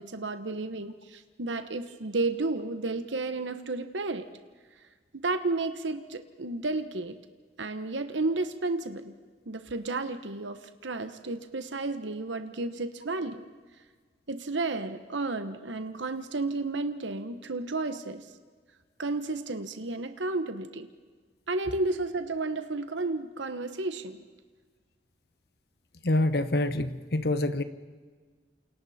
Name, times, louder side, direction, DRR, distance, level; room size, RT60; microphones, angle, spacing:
voice 1, 0.0-4.3 5.2-7.1 7.6-9.1 9.5-13.5 14.3-18.2 19.0-20.9 21.5-24.2, right 3 dB, 90° right, 9 dB, 1.2 m, -32 dB
voice 2, 26.0-27.6, left 1 dB, 60° left, 11 dB, 1.2 m, -26 dB
29.5 x 27.5 x 4.3 m, 1.5 s
head